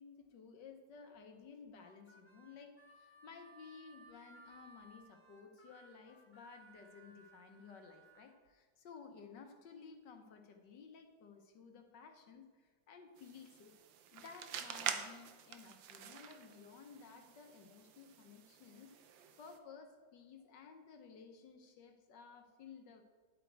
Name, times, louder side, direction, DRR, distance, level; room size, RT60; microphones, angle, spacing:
voice 1, 0.0-13.7 14.1-18.9 19.4-23.0, left 5 dB, 65° left, 5 dB, 1.5 m, -56 dB
Harmonica, 1.7-8.3, right 2 dB, 5° left, 1.2 m, -62 dB
sound 1, 13.2-19.6, right 8 dB, 70° right, 1.4 m, -47 dB
10.5 x 8.3 x 4.6 m, 1.4 s
omnidirectional pair, 2.2 m